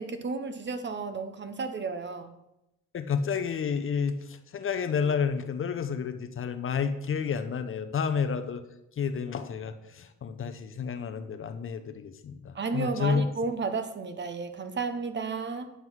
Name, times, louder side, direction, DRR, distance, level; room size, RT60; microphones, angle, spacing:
voice 1, 0.0-2.3 12.5-15.7, right 4 dB, 35° right, 9 dB, 0.9 m, -32 dB
voice 2, 2.9-8.6 9.0-13.3, left 6 dB, 45° left, 9 dB, 0.7 m, -30 dB
9.4 x 3.8 x 6.1 m, 0.89 s
cardioid pair, 90°, 30 cm